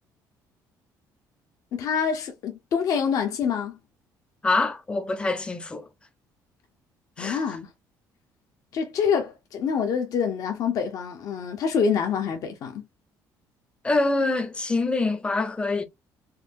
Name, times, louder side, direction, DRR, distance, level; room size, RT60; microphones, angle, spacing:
voice 1, 1.7-3.8 7.2-7.7 8.7-12.9, left 6 dB, 55° left, 0.7 m, -26 dB
voice 2, 4.4-5.9 7.2-7.4 13.8-15.8, left 3 dB, 15° left, 0.6 m, -25 dB
4.0 x 2.2 x 2.6 m
cardioid pair, 140°, 7 cm